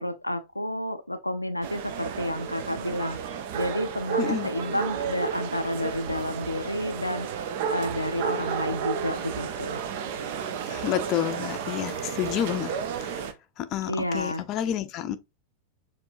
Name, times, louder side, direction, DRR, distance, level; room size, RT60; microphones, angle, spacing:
voice 1, 0.0-9.9 13.9-14.4, left 1 dB, 85° left, 0.4 m, -31 dB
sound 1, 1.6-13.3, right 7 dB, 50° right, 0.6 m, -32 dB
voice 2, 4.2-4.5 10.7-12.7 13.0-13.2 13.6-15.2, left 10 dB, 35° left, 0.5 m, -29 dB
6.8 x 2.6 x 2.6 m
figure-of-eight pair, 90°, 0 cm